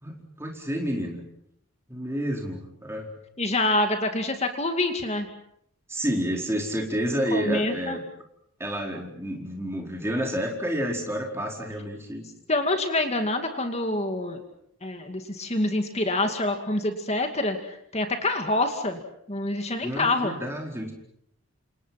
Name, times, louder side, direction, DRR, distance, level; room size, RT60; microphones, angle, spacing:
voice 1, 0.0-1.2 1.9-3.1 5.9-8.0 8.6-12.3 19.8-20.9, equal, 10° right, 1 dB, 4.6 m, -29 dB
voice 2, 3.4-5.3 7.3-8.0 12.5-14.4 14.8-19.0 19.3-20.3, left 2 dB, 30° left, 5 dB, 2.4 m, -26 dB
28.0 x 27.5 x 6.0 m, 0.71 s
head